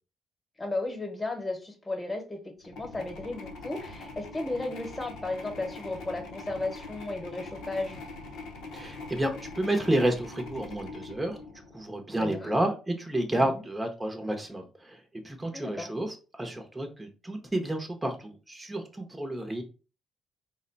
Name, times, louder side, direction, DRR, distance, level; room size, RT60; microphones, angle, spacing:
voice 1, 0.6-8.0 12.2-12.5 13.4-13.6 15.5-15.9, left 2 dB, 20° left, 4 dB, 1.1 m, -35 dB
sound 1, 2.6-12.0, left 3 dB, 85° left, 0.8 m, -43 dB
voice 2, 8.7-11.4 11.7-15.0 15.2-19.6, right 1 dB, 10° right, 3 dB, 0.7 m, -30 dB
3.7 x 2.2 x 3.8 m, 0.34 s
cardioid pair, 90°, 0 cm